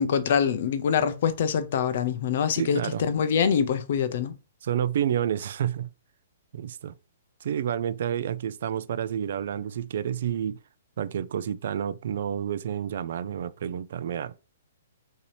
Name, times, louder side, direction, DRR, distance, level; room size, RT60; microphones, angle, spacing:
voice 1, 0.0-4.3, left 7 dB, 40° left, 0.5 m, -25 dB
voice 2, 2.6-3.0 4.6-5.9 6.5-6.9 7.4-10.6 11.0-14.3, right 9 dB, 45° right, 0.3 m, -29 dB
5.7 x 2.7 x 3.2 m
hypercardioid pair, 180°, 0 cm